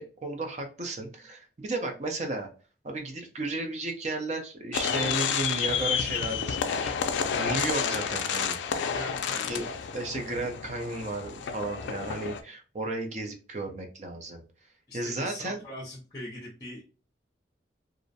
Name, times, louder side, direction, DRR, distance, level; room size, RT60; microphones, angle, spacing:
voice 1, 0.0-2.5 2.8-6.9 7.4-8.6 9.4-9.7 9.9-14.4 14.9-15.6, right 2 dB, 40° right, 4 dB, 0.5 m, -34 dB
sound 1, 4.7-12.4, left 7 dB, 75° left, 0.3 m, -30 dB
voice 2, 8.9-9.9 14.9-16.9, left 1 dB, 20° left, -3 dB, 0.5 m, -41 dB
2.4 x 2.0 x 2.6 m, 0.37 s
head